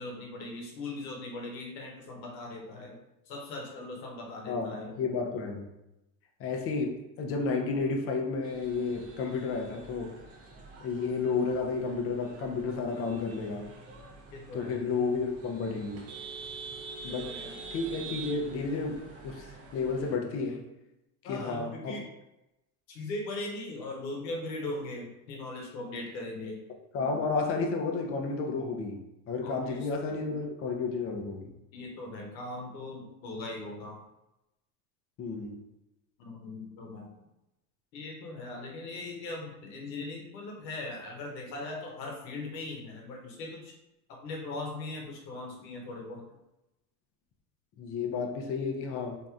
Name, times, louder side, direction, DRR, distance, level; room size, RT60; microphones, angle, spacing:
voice 1, 0.0-3.0 3.3-4.9 14.3-14.8 17.0-17.5 21.2-22.1 22.9-26.7 29.4-29.9 31.7-34.0 36.2-37.2 37.9-43.7 44.1-46.2, left 2 dB, 85° left, 0 dB, 0.9 m, -39 dB
voice 2, 4.5-5.7 6.4-10.1 10.8-13.7 14.5-16.0 17.0-17.4 17.7-19.5 19.7-20.6 21.2-22.0 26.9-29.0 29.3-31.5 35.2-35.6 47.8-49.2, left 4 dB, 30° left, 2 dB, 0.4 m, -32 dB
sound 1, 8.4-20.2, right 4 dB, 30° right, 0.6 m, -46 dB
3.0 x 2.7 x 2.3 m, 0.93 s
supercardioid pair, 100°, 49 cm